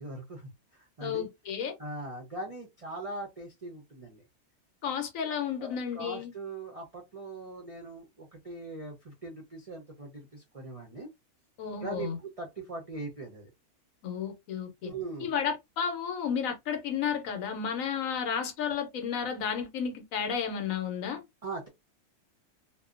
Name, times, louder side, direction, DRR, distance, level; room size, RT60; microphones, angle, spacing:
voice 1, 0.0-1.3 1.8-4.2 5.6-11.1 11.8-13.5 14.8-15.3 21.4-21.7, right 2 dB, 50° right, 0.4 m, -41 dB
voice 2, 1.0-1.7 4.8-6.3 11.6-12.2 14.0-14.9 15.2-21.2, left 7 dB, 70° left, 1.0 m, -32 dB
2.6 x 2.1 x 2.4 m
omnidirectional pair, 1.6 m